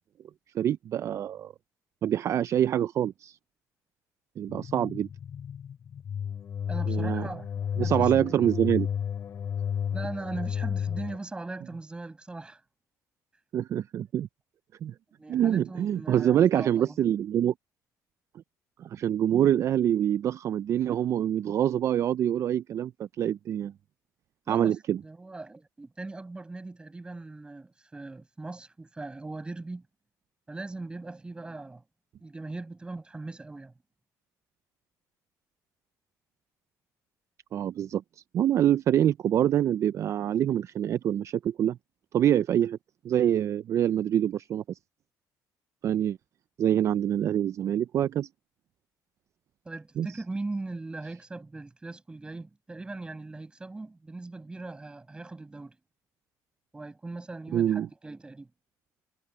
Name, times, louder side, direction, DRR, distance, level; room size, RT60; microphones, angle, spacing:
voice 1, 0.5-1.5 2.0-3.4 4.4-5.1 6.9-7.3 7.8-8.9 13.5-14.3 14.8-14.9 15.3-17.5 18.8-23.7 24.5-25.0 37.5-38.0 38.3-41.8 42.1-42.8 43.0-44.8 45.8-46.2 46.6-48.3 50.0-50.1 57.5-57.9, right 10 dB, 45° right, 0.4 m, -25 dB
sound 1, 4.5-11.2, left 8 dB, 45° left, 4.7 m, -32 dB
voice 2, 6.7-8.4 9.9-12.6 15.2-17.0 24.5-29.9 30.5-31.8 32.2-33.7 49.6-55.8 56.7-58.5, right 2 dB, 15° right, 7.8 m, -40 dB
cardioid pair, 135°, 7 cm